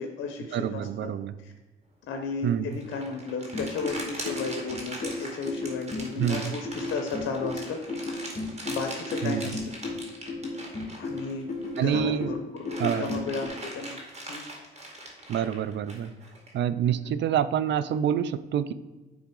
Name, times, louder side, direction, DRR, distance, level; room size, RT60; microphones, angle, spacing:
voice 1, 0.0-1.1 1.4-1.5 2.1-8.3 8.7-9.7 11.0-14.0 14.3-14.5 16.9-17.2, left 4 dB, 75° left, 4 dB, 1.0 m, -34 dB
voice 2, 0.5-1.3 2.4-2.8 6.2-6.5 9.2-9.6 11.8-12.3 12.8-13.1 15.3-16.1 16.5-18.7, right 9 dB, 65° right, 14 dB, 0.5 m, -27 dB
sound 1, 2.7-12.0 12.3-16.5, right 1 dB, 35° right, 2.3 m, -41 dB
sound 2, 3.5-13.5, left 3 dB, 35° left, 2.1 m, -34 dB
10.0 x 3.5 x 4.7 m, 1.2 s
cardioid pair, 90°, 20 cm